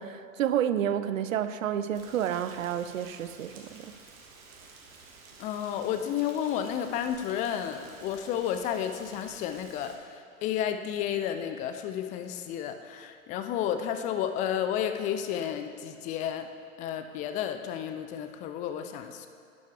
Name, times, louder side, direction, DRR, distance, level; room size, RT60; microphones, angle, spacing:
voice 1, 0.0-3.9, right 9 dB, 70° right, 12 dB, 0.7 m, -30 dB
Rain, 1.9-9.9, right 4 dB, 40° right, 1.6 m, -52 dB
voice 2, 5.4-16.5 16.8-19.3, left 9 dB, 20° left, 8 dB, 0.4 m, -32 dB
11.5 x 10.5 x 3.4 m, 2.5 s
figure-of-eight pair, 100°, 42 cm